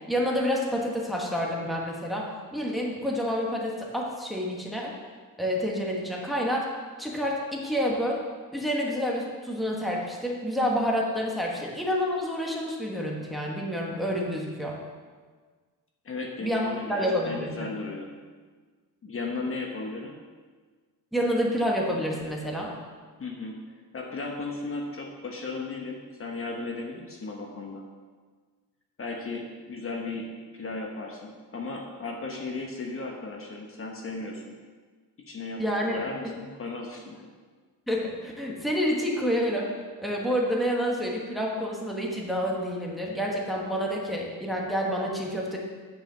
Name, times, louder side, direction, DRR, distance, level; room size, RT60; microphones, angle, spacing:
voice 1, 0.1-4.9 5.4-6.7 7.0-8.2 8.5-14.8 16.4-17.7 21.1-22.7 35.6-36.3 37.9-39.7 40.0-45.6, equal, ahead, -2 dB, 1.3 m, -28 dB
voice 2, 16.0-18.1 19.0-20.2 23.2-23.6 23.9-27.8 29.0-34.4 35.3-35.6 35.9-37.3, left 3 dB, 40° left, 1 dB, 1.0 m, -35 dB
9.1 x 4.8 x 6.8 m, 1.5 s
wide cardioid pair, 155°, 35 cm